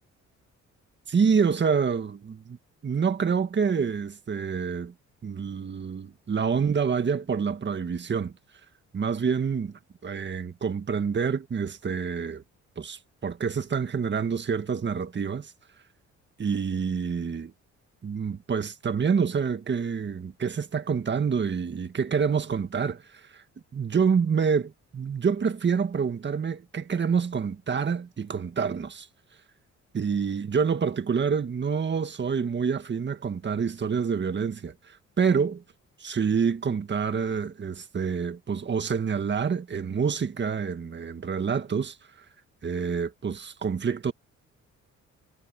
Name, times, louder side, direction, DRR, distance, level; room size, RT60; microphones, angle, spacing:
voice 1, 1.1-2.6 2.8-4.9 5.2-8.3 8.9-12.4 12.8-15.5 16.4-17.5 18.0-23.4 23.7-29.1 29.9-35.6 36.0-42.0 42.6-44.1, right 6 dB, 35° right, 1.7 m, -27 dB
cardioid pair, 90°, 30 cm